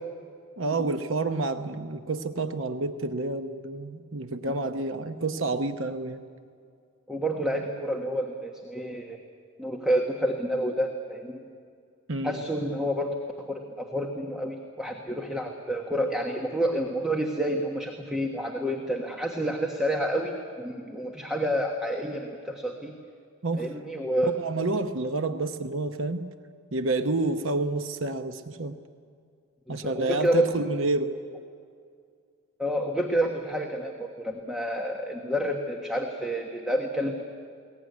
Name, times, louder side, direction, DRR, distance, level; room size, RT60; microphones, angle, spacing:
voice 1, 0.6-6.2 12.1-12.4 23.4-23.7 24.3-26.2 26.7-28.8 29.7-31.1, right 2 dB, 60° right, 8 dB, 0.9 m, -29 dB
voice 2, 7.1-9.2 9.6-11.4 12.2-22.9 23.6-24.3 29.8-30.5 32.6-37.2, equal, 5° right, 1 dB, 1.3 m, -29 dB
22.0 x 18.5 x 9.5 m, 2.2 s
head